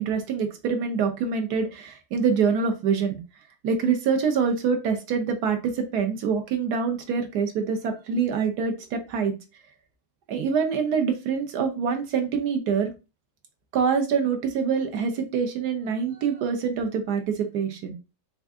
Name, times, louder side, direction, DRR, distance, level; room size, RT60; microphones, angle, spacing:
voice 1, 0.0-3.2 3.6-9.3 10.3-12.9 13.7-17.9, right 6 dB, 65° right, 5 dB, 1.3 m, -25 dB
4.5 x 2.4 x 3.6 m, 0.28 s
omnidirectional pair, 1.9 m